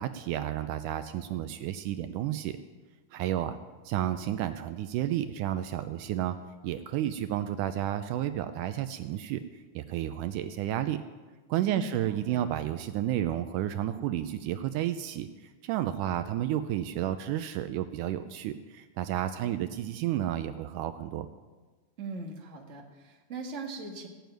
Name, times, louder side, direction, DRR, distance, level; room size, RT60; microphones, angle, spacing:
voice 1, 0.0-2.6 3.1-3.6 3.9-6.4 6.6-9.4 9.8-11.0 11.5-15.3 15.6-21.3, right 12 dB, 80° right, 10 dB, 2.1 m, -31 dB
voice 2, 11.6-12.4 22.0-24.1, right 2 dB, 25° right, 0 dB, 1.7 m, -40 dB
16.5 x 7.0 x 9.1 m, 1.3 s
omnidirectional pair, 3.7 m